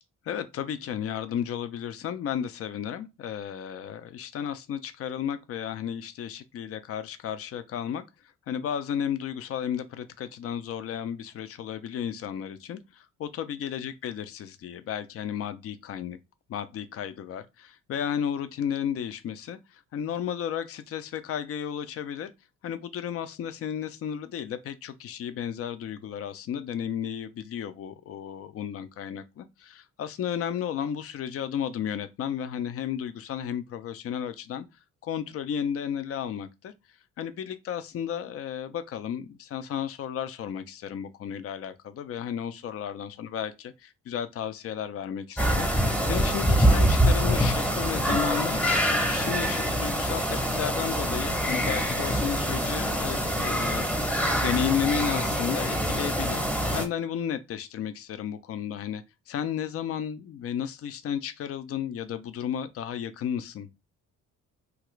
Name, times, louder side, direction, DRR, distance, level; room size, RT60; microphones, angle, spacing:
voice 1, 0.3-8.0 8.5-16.2 16.5-22.3 22.6-34.6 35.0-36.7 37.2-43.5 43.8-56.4 56.7-63.7, left 9 dB, 50° left, 0.5 m, -33 dB
sound 1, 45.4-56.8, equal, 5° left, 0.8 m, -25 dB
2.8 x 2.4 x 3.1 m
cardioid pair, 90°, 30 cm